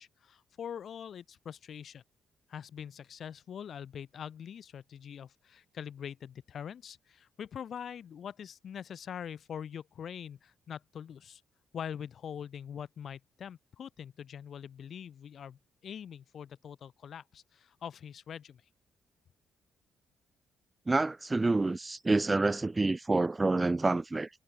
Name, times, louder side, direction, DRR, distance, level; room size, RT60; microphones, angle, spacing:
voice 1, 0.0-2.0 2.5-11.4 11.7-18.6, left 8 dB, 45° left, 1.8 m, -43 dB
voice 2, 20.9-24.3, right 3 dB, 15° right, 0.6 m, -28 dB
cardioid pair, 175°, 0 cm